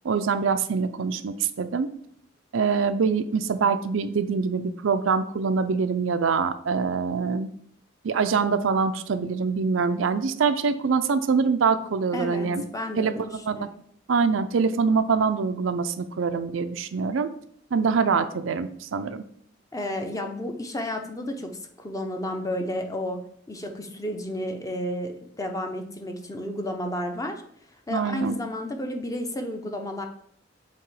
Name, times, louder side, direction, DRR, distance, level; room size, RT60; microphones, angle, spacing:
voice 1, 0.0-1.9 2.5-7.5 8.0-12.7 13.0-13.6 14.1-17.3 17.7-19.2 27.9-28.4, right 5 dB, 85° right, 9 dB, 0.5 m, -24 dB
voice 2, 12.1-13.7 19.7-23.2 23.5-27.4 27.9-30.1, left 1 dB, 15° left, 4 dB, 0.6 m, -32 dB
7.7 x 2.9 x 4.8 m, 0.65 s
head